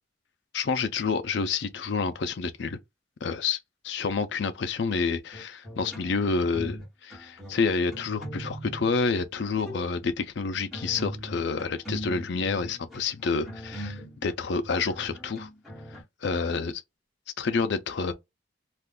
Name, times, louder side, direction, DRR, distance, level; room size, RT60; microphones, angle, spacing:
voice 1, 0.5-2.8 3.2-3.6 3.8-15.5 16.2-16.8 17.4-18.1, left 4 dB, 60° left, 0.4 m, -28 dB
sound 1, 5.3-6.8 7.1-8.9 9.4-9.9 10.4-16.0, equal, ahead, 1.1 m, -40 dB
2.4 x 2.3 x 3.6 m
head